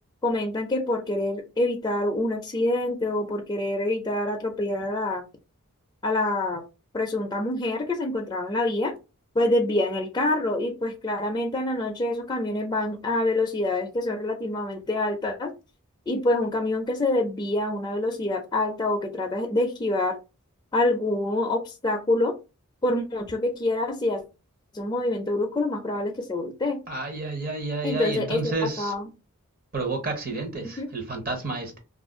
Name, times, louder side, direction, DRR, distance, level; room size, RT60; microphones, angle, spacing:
voice 1, 0.2-5.2 6.0-6.6 6.9-8.9 9.4-15.5 16.1-20.2 20.7-22.3 22.8-24.2 24.7-26.8 27.8-29.1 30.8-30.9, left 2 dB, 20° left, 0.4 m, -26 dB
voice 2, 26.9-28.9 29.7-31.8, right 3 dB, 40° right, 0.8 m, -30 dB
2.4 x 2.2 x 3.5 m
head